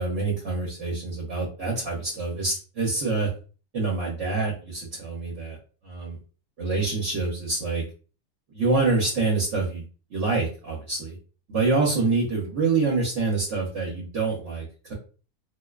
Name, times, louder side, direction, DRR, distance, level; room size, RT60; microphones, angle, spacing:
voice 1, 0.0-3.3 3.7-5.6 5.8-6.2 6.6-7.8 8.5-9.8 10.1-11.1 11.5-14.9, right 3 dB, 60° right, -4 dB, 1.0 m, -26 dB
2.5 x 2.1 x 2.3 m, 0.38 s
omnidirectional pair, 1.5 m